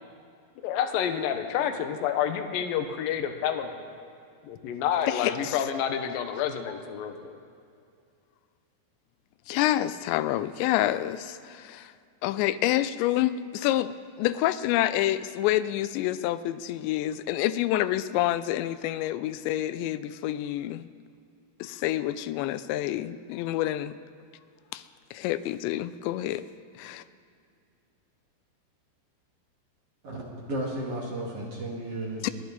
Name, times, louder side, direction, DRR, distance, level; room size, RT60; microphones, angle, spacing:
voice 1, 0.6-3.8 4.4-7.3, left 9 dB, 70° left, 6 dB, 2.4 m, -29 dB
voice 2, 5.1-5.6 9.5-11.9 12.2-20.9 21.6-24.0 24.7-24.8 25.1-26.4 26.8-27.0 32.2-32.3, left 13 dB, 90° left, 14 dB, 2.9 m, -28 dB
voice 3, 30.0-32.3, right 1 dB, 45° right, -3 dB, 2.3 m, -34 dB
29.0 x 11.0 x 4.1 m, 2.4 s
omnidirectional pair, 5.0 m